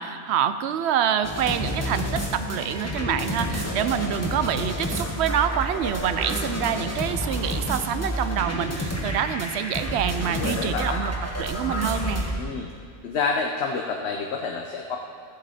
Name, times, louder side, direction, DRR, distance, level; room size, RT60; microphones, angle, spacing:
voice 1, 0.0-12.2, right 9 dB, 85° right, 11 dB, 0.8 m, -26 dB
sound 1, 1.2-12.3, equal, 15° left, 1.4 m, -29 dB
voice 2, 10.3-11.0 12.4-12.7 13.0-15.0, left 4 dB, 80° left, 1 dB, 1.0 m, -28 dB
14.5 x 7.9 x 4.2 m, 2.3 s
omnidirectional pair, 1.1 m